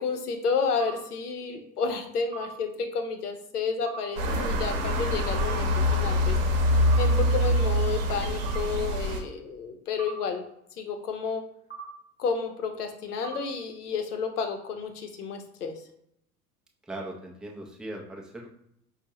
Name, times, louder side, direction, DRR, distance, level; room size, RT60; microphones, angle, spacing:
voice 1, 0.0-6.4 6.7-10.4 10.8-11.4 12.2-15.7, left 5 dB, 75° left, 5 dB, 0.8 m, -31 dB
sound 1, 0.8-0.9 2.3-2.5 3.9-4.0 5.4-5.5 6.9-7.1 8.4-8.6 10.0-10.1 11.7-11.8 13.2-13.4, right 7 dB, 20° left, 1.0 m, -38 dB
sound 2, 4.2-9.2, equal, 55° right, 0.9 m, -25 dB
voice 2, 16.9-18.5, right 1 dB, ahead, -1 dB, 0.5 m, -39 dB
5.3 x 2.3 x 2.9 m, 0.75 s
figure-of-eight pair, 75°, 47 cm